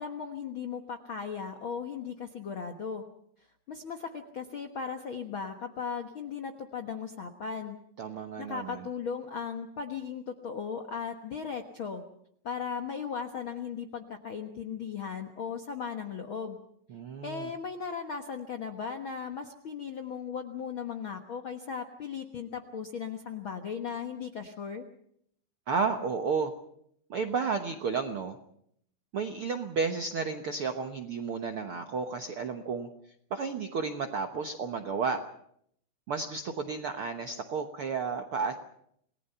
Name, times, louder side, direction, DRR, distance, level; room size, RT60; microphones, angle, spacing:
voice 1, 0.0-3.0 3.7-7.8 8.4-12.0 12.4-16.6 17.2-24.8, left 6 dB, 65° left, 5 dB, 1.2 m, -37 dB
voice 2, 8.0-8.9 16.9-17.5 25.7-26.5 27.1-28.4 29.1-32.9 33.3-35.2 36.1-38.5, right 5 dB, 70° right, 6 dB, 1.3 m, -32 dB
28.5 x 19.5 x 5.7 m, 0.69 s
omnidirectional pair, 4.2 m